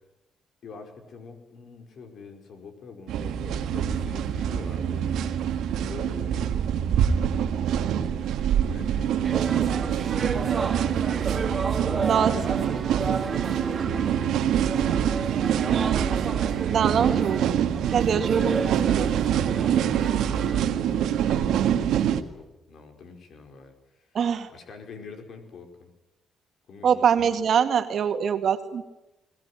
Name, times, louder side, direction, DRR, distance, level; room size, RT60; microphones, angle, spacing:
voice 1, 0.6-5.1 5.8-6.7 6.9-7.6 8.7-11.0 11.8-15.4 16.9-17.2 18.1-18.5 19.5-24.2 24.5-25.9 26.7-27.4, left 5 dB, 60° left, 5 dB, 5.0 m, -45 dB
sound 1, 3.1-22.2, right 9 dB, 80° right, 1.7 m, -25 dB
sound 2, 9.2-20.6, right 4 dB, 35° right, 2.3 m, -32 dB
voice 2, 15.7-16.3 16.7-17.4 17.9-19.6 24.1-24.5 26.8-28.8, right 7 dB, 60° right, 7 dB, 2.1 m, -24 dB
21.5 x 19.5 x 9.9 m, 0.96 s
cardioid pair, 90°, 0 cm